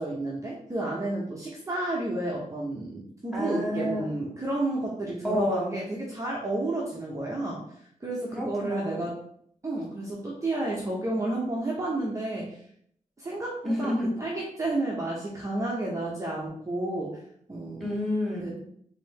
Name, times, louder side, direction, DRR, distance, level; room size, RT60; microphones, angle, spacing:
voice 1, 0.0-7.6 8.0-9.1 9.6-12.6 13.2-17.2 17.5-17.9 18.4-18.5, right 2 dB, 25° right, -4 dB, 0.8 m, -31 dB
voice 2, 3.3-4.1 5.2-5.7 8.3-9.0 13.6-14.1 17.8-18.7, equal, ahead, -4 dB, 1.2 m, -29 dB
4.0 x 2.7 x 3.5 m, 0.66 s
wide cardioid pair, 105°, 14 cm